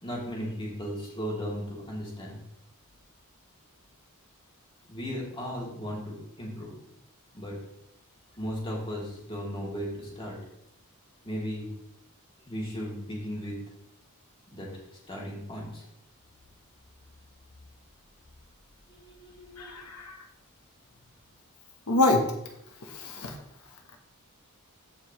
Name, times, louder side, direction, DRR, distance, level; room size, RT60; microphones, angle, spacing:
voice 1, 0.0-2.4 4.9-6.7 7.3-7.5 8.4-10.4 11.2-11.7 12.5-13.6 14.5-14.7 15.1-15.8 18.9-19.3, equal, 25° left, -4 dB, 3.0 m, -36 dB
voice 2, 19.4-20.2 21.9-22.3 22.8-23.4, left 2 dB, 85° left, 2 dB, 1.2 m, -26 dB
14.5 x 5.5 x 3.2 m, 0.80 s
head